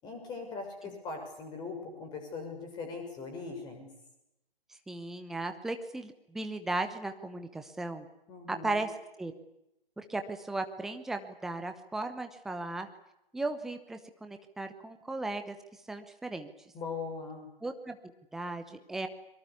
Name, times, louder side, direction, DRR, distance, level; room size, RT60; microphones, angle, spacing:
voice 1, 0.0-3.9 8.3-8.8 16.7-17.5, left 4 dB, 15° left, 5 dB, 6.5 m, -40 dB
voice 2, 4.9-8.1 8.5-8.9 9.2-9.3 10.0-12.9 13.3-15.6 15.9-16.5 17.6-18.0 18.3-19.1, right 2 dB, ahead, 7 dB, 0.9 m, -36 dB
25.0 x 23.5 x 8.4 m, 0.84 s
figure-of-eight pair, 140°, 30 cm